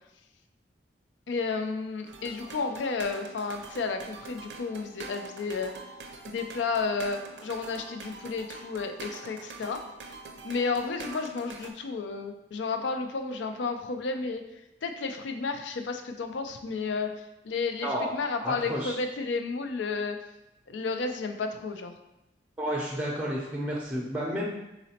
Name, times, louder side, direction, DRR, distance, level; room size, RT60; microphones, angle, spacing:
voice 1, 1.3-5.8 6.2-9.8 10.4-14.4 14.8-20.2 20.7-21.9, left 4 dB, 80° left, 6 dB, 0.4 m, -32 dB
sound 1, 2.1-11.7, right 3 dB, 75° right, 0.5 m, -44 dB
voice 2, 18.4-19.0 22.6-24.4, equal, 5° right, -3 dB, 0.5 m, -31 dB
4.1 x 3.9 x 2.8 m, 0.92 s
head